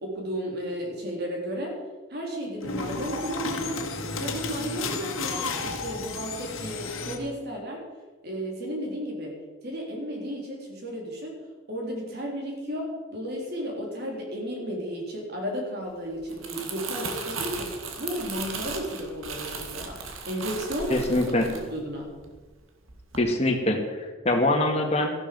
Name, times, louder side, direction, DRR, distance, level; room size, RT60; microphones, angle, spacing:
voice 1, 0.0-1.8 2.1-3.9 4.2-7.9 8.2-9.4 9.6-21.0 21.3-21.4 21.7-22.1, equal, 50° right, -1 dB, 3.7 m, -33 dB
sound 1, 2.6-7.2, left 3 dB, 90° left, 1.8 m, -32 dB
Crumpling crinkling, 16.1-22.5 22.9-23.2, right 4 dB, 80° right, 1.9 m, -36 dB
voice 2, 20.9-21.5 23.2-25.1, left 1 dB, 30° left, 2 dB, 1.9 m, -24 dB
14.0 x 12.0 x 5.3 m, 1.3 s
head